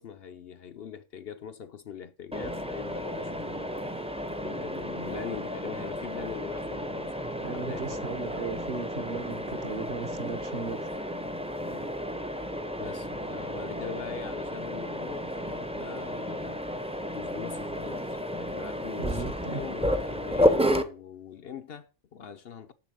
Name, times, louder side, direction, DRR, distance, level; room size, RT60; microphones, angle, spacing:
voice 1, 0.0-3.9 4.4-7.3 7.5-8.2 9.1-9.3 11.7-11.9 12.8-16.6 17.1-22.7, left 8 dB, 60° left, 0.8 m, -42 dB
Mechanisms, 2.3-20.8, equal, 5° right, 0.6 m, -32 dB
voice 2, 7.4-11.2 19.0-19.6, right 5 dB, 55° right, 1.3 m, -37 dB
7.2 x 7.0 x 7.7 m
omnidirectional pair, 1.3 m